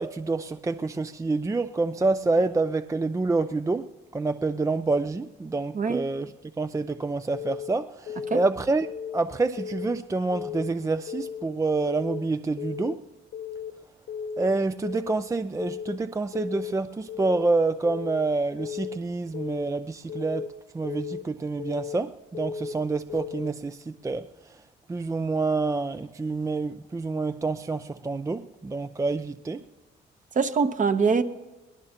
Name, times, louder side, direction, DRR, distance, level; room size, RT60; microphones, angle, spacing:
voice 1, 0.0-6.3 6.6-8.9 9.1-13.0 14.4-24.3 24.9-29.6, right 3 dB, 15° right, 0.4 m, -27 dB
Keyboard (musical) / Alarm, 7.3-7.7 8.1-8.4 8.8-9.2 9.6-10.0 10.3-10.7 11.1-11.5 11.8-12.2 12.6-13.0 13.3-13.7 14.1-14.5 14.8-15.2 15.6-16.0 16.3-16.7 17.1-17.5 17.8-18.2 18.6-19.0 19.3-19.7 20.1-20.5 20.8-21.2 21.6-22.0 22.3-22.7 23.1-23.5, left 7 dB, 75° left, 1.4 m, -35 dB
voice 2, 30.3-31.2, right 5 dB, 40° right, 1.0 m, -23 dB
23.5 x 18.5 x 2.9 m
cardioid pair, 90°, 20 cm